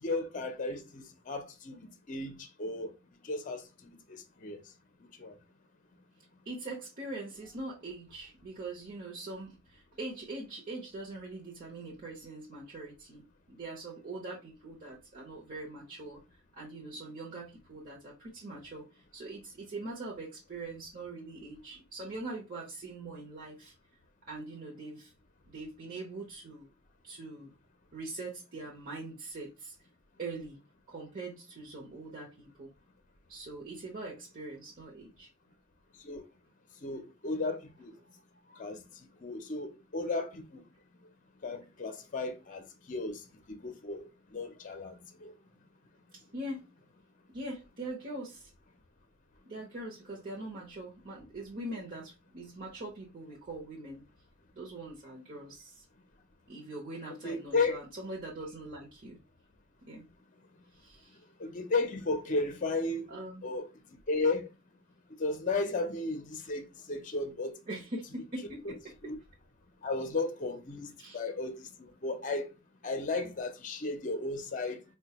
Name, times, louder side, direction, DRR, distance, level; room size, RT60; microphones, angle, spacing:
voice 1, 0.0-2.9 3.2-4.6 5.2-5.3 36.0-36.2 36.8-38.0 38.5-40.6 41.4-44.0 44.3-45.3 57.2-57.8 61.4-63.1 63.4-63.7 64.1-64.5 65.2-67.6 68.6-68.7 69.0-69.2 69.8-72.5 72.8-74.8, left 3 dB, 40° left, 0.6 m, -34 dB
voice 2, 6.4-23.7 24.3-25.1 25.5-26.7 27.0-27.5 27.9-29.8 30.2-30.6 30.9-32.7 33.3-35.3 46.1-46.7 47.3-48.5 49.5-54.0 54.5-55.8 56.5-59.2 59.9-60.1 60.7-61.2 63.1-63.5 67.7-69.2 71.0-71.2, right 2 dB, 45° right, 0.8 m, -42 dB
4.3 x 2.2 x 2.9 m
head